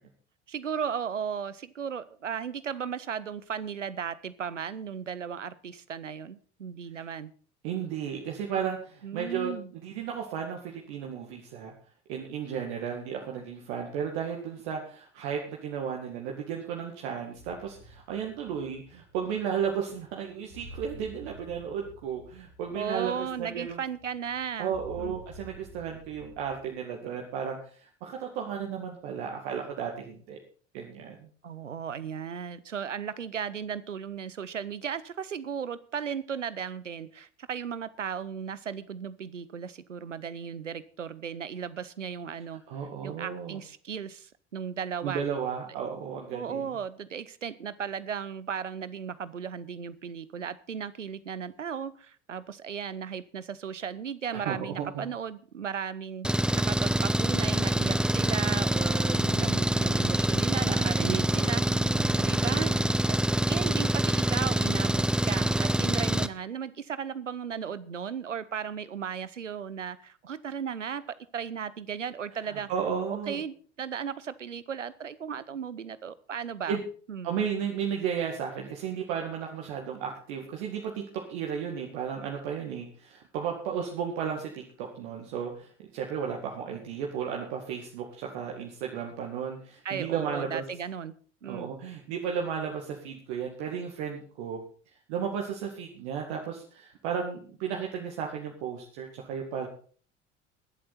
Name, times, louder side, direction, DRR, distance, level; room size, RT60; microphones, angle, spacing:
voice 1, 0.5-7.3 9.0-9.7 22.7-25.2 31.4-42.6 43.0-45.2 46.3-61.6 62.2-62.8 63.1-63.2 63.5-72.7 73.1-76.8 77.1-77.3 89.8-91.1 91.4-91.7, right 7 dB, 90° right, 17 dB, 0.7 m, -36 dB
voice 2, 7.6-11.7 12.1-23.8 24.6-30.4 30.7-31.3 42.7-43.6 45.0-46.7 54.3-55.0 60.7-61.3 61.7-62.3 62.7-62.9 72.4-73.4 76.7-76.8 77.2-90.6 91.5-94.6 95.1-99.7, right 7 dB, 60° right, 1 dB, 2.2 m, -34 dB
sound 1, 17.3-26.7, right 1 dB, 85° left, 3.8 m, -50 dB
Engine, 56.2-66.3, right 1 dB, ahead, 0.6 m, -25 dB
21.5 x 7.9 x 4.2 m, 0.43 s
figure-of-eight pair, 70°, 36 cm